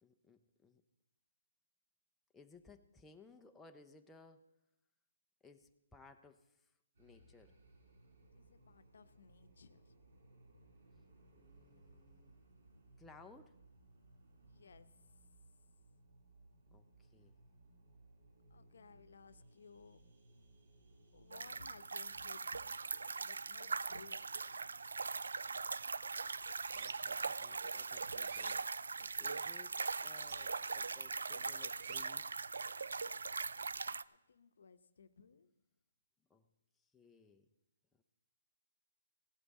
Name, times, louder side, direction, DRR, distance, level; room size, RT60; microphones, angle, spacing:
voice 1, 0.0-0.8 2.3-4.4 5.4-6.7 7.0-7.5 11.3-12.4 13.0-13.6 16.7-17.3 26.7-32.4 36.3-36.5 36.8-37.5 38.0-38.1, left 4 dB, 5° left, 4 dB, 0.5 m, -61 dB
sound 1, 6.9-21.7, right 2 dB, 60° right, 4.3 m, -64 dB
voice 2, 8.3-9.9 14.4-14.9 18.5-20.0 21.1-22.7 23.2-24.4 34.0-35.5, left 5 dB, 70° left, 12 dB, 0.8 m, -60 dB
sound 2, 21.3-34.0, right 4 dB, 85° right, 0.3 m, -41 dB
sound 3, 25.5-25.7 26.1-27.2 27.7-29.4 30.0-30.8 31.1-32.3, right 8 dB, 40° right, 0.7 m, -53 dB
16.5 x 11.0 x 4.1 m, 0.91 s
hypercardioid pair, 160°, 0 cm